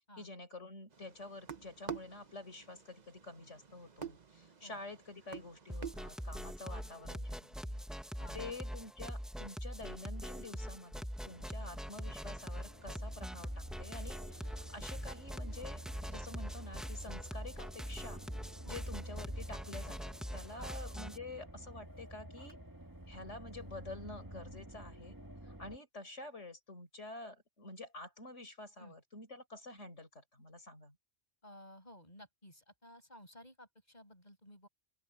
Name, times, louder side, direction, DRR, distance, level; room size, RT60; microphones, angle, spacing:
voice 1, 0.2-7.8 8.3-18.2 18.7-22.6 23.1-25.2 25.4-31.0, left 2 dB, 65° left, 5.2 m, -49 dB
sound 1, 0.9-6.5, right 6 dB, 35° right, 1.1 m, -48 dB
sound 2, 5.7-21.2, equal, ahead, 1.1 m, -43 dB
voice 2, 6.7-7.6 8.2-8.5 11.6-11.7 18.6-18.8 20.6-20.7 28.8-28.9 31.4-34.7, equal, 35° left, 7.4 m, -56 dB
sound 3, 11.2-25.8, right 1 dB, 15° right, 1.8 m, -50 dB
open air
omnidirectional pair, 1.3 m